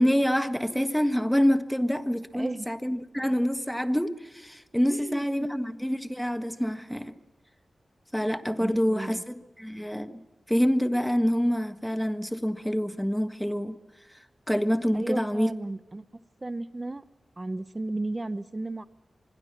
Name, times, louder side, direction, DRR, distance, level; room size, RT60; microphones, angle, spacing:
voice 1, 0.0-7.1 8.1-13.8 14.5-15.5, equal, 5° left, 10 dB, 1.5 m, -26 dB
voice 2, 2.3-2.7 4.9-5.2 8.6-9.2 14.9-17.0 17.4-18.9, right 2 dB, 30° right, 14 dB, 0.8 m, -34 dB
25.5 x 21.5 x 6.0 m, 1.2 s
cardioid pair, 70°, 0 cm